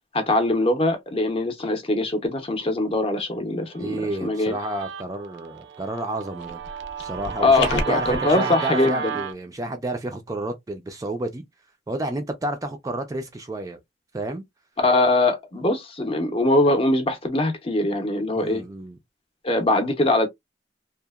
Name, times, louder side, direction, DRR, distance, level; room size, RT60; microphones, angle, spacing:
voice 1, 0.1-4.0 4.2-4.6 7.4-9.2 14.8-18.6 19.4-20.3, left 2 dB, 30° left, 0.6 m, -22 dB
voice 2, 3.8-6.6 7.0-11.4 11.9-13.8 14.1-14.4 18.3-19.0, right 1 dB, 20° right, 0.3 m, -30 dB
Guitar, 3.8-9.3, right 6 dB, 85° right, 0.4 m, -33 dB
sound 1, 6.4-8.3, left 3 dB, 90° left, 0.8 m, -32 dB
2.8 x 2.0 x 2.2 m
head